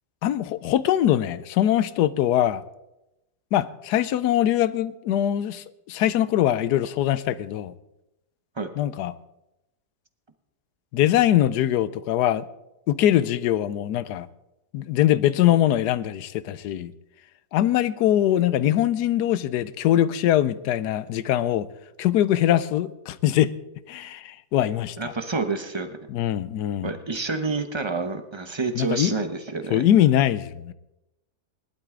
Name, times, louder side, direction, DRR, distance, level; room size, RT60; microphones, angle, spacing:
voice 1, 0.2-2.6 3.5-7.7 8.8-9.1 10.9-12.4 12.9-14.3 14.7-16.9 17.5-21.7 22.0-23.5 23.9-25.1 26.1-26.9 28.7-29.1 29.7-30.7, left 12 dB, 85° left, 16 dB, 1.2 m, -22 dB
voice 2, 25.0-26.0 26.8-29.8, right 3 dB, 25° right, 7 dB, 0.7 m, -28 dB
19.0 x 12.0 x 3.8 m, 0.91 s
omnidirectional pair, 1.7 m